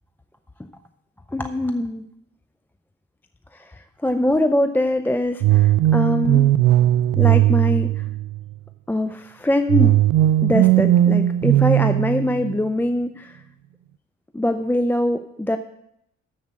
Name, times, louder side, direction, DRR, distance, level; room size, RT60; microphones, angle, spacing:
voice 1, 1.3-2.0 3.5-6.5 7.2-8.0 8.9-10.0 10.4-13.4 14.3-15.6, left 1 dB, 5° left, 8 dB, 0.4 m, -23 dB
sound 1, 5.4-8.5 9.7-12.6, right 13 dB, 80° right, 0.5 m, -18 dB
7.3 x 7.2 x 7.5 m, 0.79 s
cardioid pair, 90°, 30 cm